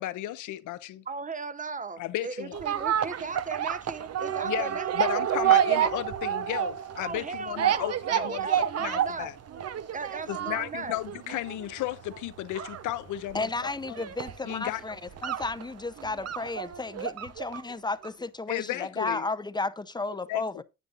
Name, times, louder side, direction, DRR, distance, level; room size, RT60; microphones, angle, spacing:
voice 1, 0.0-1.0 2.0-2.7 4.4-9.4 10.3-13.5 13.9-14.0 14.4-14.8 18.5-19.3 20.3-20.4, left 14 dB, 85° left, 0.8 m, -34 dB
voice 2, 1.1-4.9 7.0-9.3 9.9-11.0, right 4 dB, 25° right, 0.9 m, -37 dB
sound 1, 2.5-17.7 18.0-18.1, right 10 dB, 55° right, 0.9 m, -29 dB
voice 3, 13.3-15.0 15.2-20.5, left 3 dB, 15° left, 0.7 m, -33 dB
9.4 x 8.9 x 2.5 m
cardioid pair, 90°, 30 cm